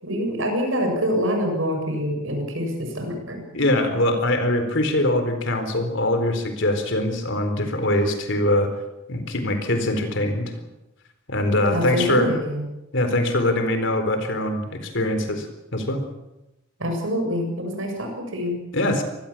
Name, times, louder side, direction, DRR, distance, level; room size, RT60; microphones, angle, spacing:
voice 1, 0.0-3.4 11.7-12.6 16.8-18.6, equal, 70° right, 3 dB, 7.8 m, -25 dB
voice 2, 3.5-8.7 9.1-10.5 11.3-12.3 12.9-15.5 15.7-16.0 18.7-19.0, left 1 dB, 60° left, 7 dB, 4.1 m, -22 dB
25.0 x 19.5 x 7.5 m, 0.94 s
head